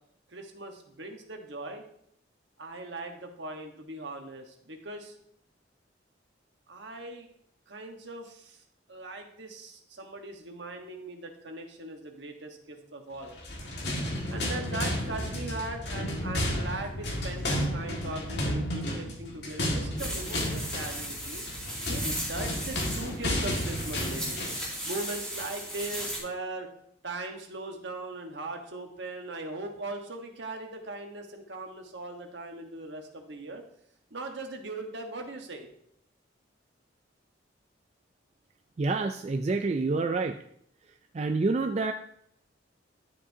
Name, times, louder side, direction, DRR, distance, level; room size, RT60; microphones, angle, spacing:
voice 1, 0.3-1.8 2.6-5.1 6.7-7.3 7.7-8.6 8.9-13.4 14.3-21.4 21.9-24.4 24.8-26.7 27.0-33.6 34.1-35.7, right 2 dB, 70° right, 3 dB, 1.3 m, -39 dB
sound 1, 13.3-24.7, left 1 dB, 60° left, 1.9 m, -32 dB
sound 2, 20.0-26.2, equal, 5° left, 2.5 m, -36 dB
voice 2, 38.8-40.4 41.1-41.9, right 3 dB, 35° right, 6 dB, 0.3 m, -27 dB
11.0 x 7.5 x 2.8 m, 0.70 s
head